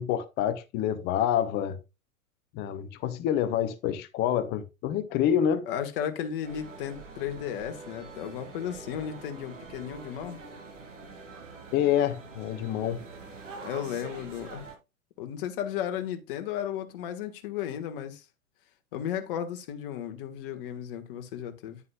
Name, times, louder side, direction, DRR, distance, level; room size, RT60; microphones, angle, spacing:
voice 1, 0.0-1.8 2.5-5.7 11.7-13.0, left 10 dB, 25° left, 0.8 m, -27 dB
voice 2, 5.7-10.4 13.6-14.7 15.2-18.2 18.9-21.8, left 9 dB, 40° left, 1.5 m, -34 dB
sound 1, 6.4-14.8, right 4 dB, 60° right, 3.7 m, -45 dB
9.9 x 9.3 x 2.3 m
figure-of-eight pair, 110°, 42 cm